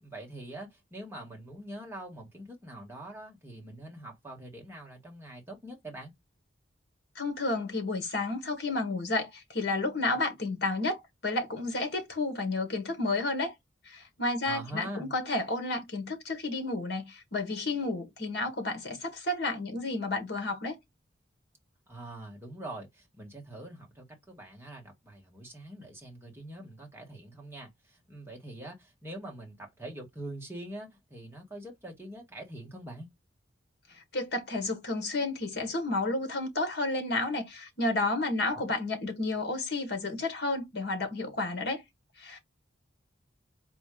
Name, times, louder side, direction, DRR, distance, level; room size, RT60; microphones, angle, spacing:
voice 1, 0.0-6.1 14.4-15.1 21.9-33.1 38.5-38.6, right 1 dB, 10° right, 1.4 m, -44 dB
voice 2, 7.1-13.5 13.9-20.8 34.1-41.8 42.2-42.4, left 2 dB, 55° left, 1.4 m, -31 dB
4.4 x 2.4 x 3.7 m
head